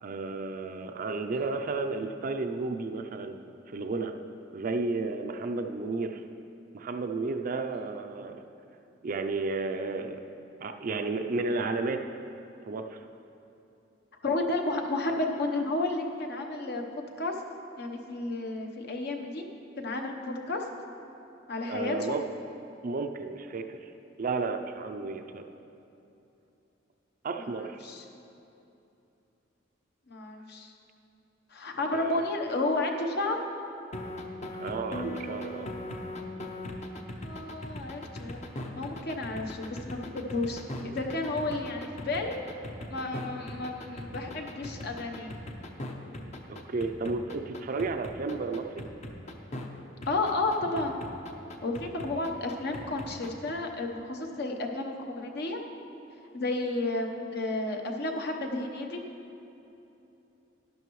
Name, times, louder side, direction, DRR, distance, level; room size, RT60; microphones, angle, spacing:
voice 1, 0.0-4.1 4.5-6.2 6.7-8.5 9.0-10.2 10.6-12.0 12.7-13.0 21.7-22.2 22.8-23.9 24.2-25.4 27.2-27.8 31.9-32.2 34.6-35.7 46.5-48.8, right 3 dB, 45° right, 6 dB, 0.4 m, -32 dB
voice 2, 14.2-16.8 17.2-17.4 17.8-19.5 19.8-20.7 21.5-22.2 27.4-28.0 30.1-30.7 31.5-33.4 37.2-38.4 38.7-42.4 42.9-45.3 50.1-51.0 51.6-55.6 56.3-59.0, left 2 dB, 60° left, 3 dB, 1.0 m, -32 dB
sound 1, 33.9-49.7 50.0-53.5, left 1 dB, 40° left, 0.8 m, -39 dB
12.5 x 11.0 x 3.1 m, 2.9 s
head